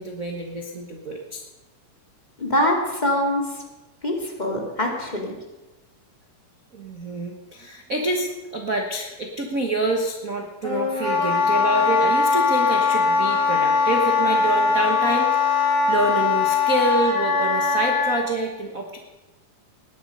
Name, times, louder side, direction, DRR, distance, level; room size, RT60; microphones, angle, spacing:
voice 1, 0.0-1.5 6.7-19.0, right 2 dB, 75° right, 2 dB, 0.7 m, -27 dB
voice 2, 2.4-3.6 4.0-5.4, left 1 dB, 15° left, 0 dB, 2.1 m, -24 dB
Wind instrument woodwind instrument, 10.6-18.2, left 5 dB, 40° left, 5.8 m, -21 dB
18.5 x 10.5 x 5.4 m, 1.1 s
omnidirectional pair, 3.8 m